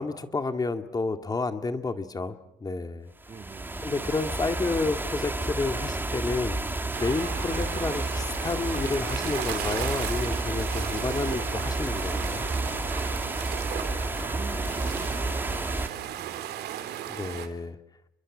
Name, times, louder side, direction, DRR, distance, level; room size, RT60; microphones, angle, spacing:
voice 1, 0.0-3.1 3.8-12.5 17.1-17.8, left 3 dB, 20° left, 8 dB, 2.2 m, -30 dB
sound 1, 3.2-15.9, right 2 dB, 10° right, 2.1 m, -31 dB
voice 2, 3.3-4.1 13.7-16.5, right 5 dB, 30° right, 8 dB, 2.0 m, -44 dB
sound 2, 6.9-17.5, right 11 dB, 75° right, 3.3 m, -36 dB
30.0 x 23.0 x 7.4 m, 0.82 s
cardioid pair, 110°, 17 cm